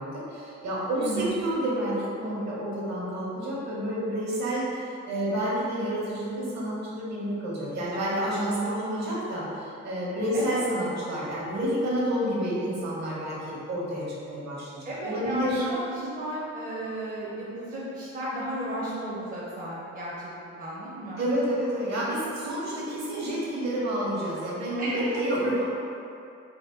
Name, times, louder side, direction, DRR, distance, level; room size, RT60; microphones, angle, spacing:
voice 1, 0.0-15.6 21.2-25.6, right 1 dB, 60° right, -6 dB, 1.3 m, -29 dB
voice 2, 1.0-1.3 7.9-8.2 10.3-10.6 14.8-20.3 20.6-21.2 24.8-25.2, right 1 dB, 30° right, -7 dB, 0.7 m, -34 dB
4.1 x 2.1 x 3.8 m, 2.6 s
cardioid pair, 90°, 30 cm